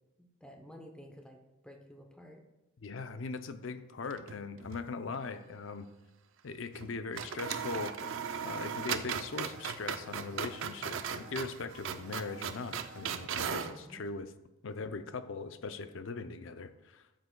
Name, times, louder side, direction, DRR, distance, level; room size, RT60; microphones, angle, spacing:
voice 1, 0.2-2.4 13.4-14.0, equal, 5° left, 3 dB, 0.7 m, -52 dB
voice 2, 2.8-5.9 6.4-8.0 8.4-14.3 14.6-17.0, left 4 dB, 65° left, 11 dB, 0.5 m, -40 dB
sound 1, 4.0-4.9 5.1-5.2 6.7-6.9 7.1-13.8, right 7 dB, 65° right, 0.4 m, -38 dB
12.0 x 7.7 x 2.3 m, 0.99 s
head